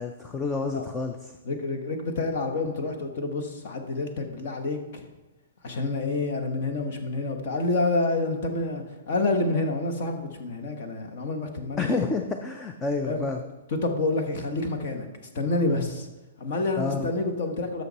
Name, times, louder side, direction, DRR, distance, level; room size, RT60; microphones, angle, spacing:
voice 1, 0.0-1.3 11.8-13.4 16.8-17.1, left 3 dB, 10° left, 5 dB, 0.4 m, -29 dB
voice 2, 1.4-5.0 5.6-11.9 13.0-13.3 13.8-15.1 15.3-16.1 16.4-17.8, left 2 dB, 40° left, 5 dB, 1.2 m, -28 dB
11.5 x 6.7 x 4.1 m, 1.1 s
hypercardioid pair, 175°, 0 cm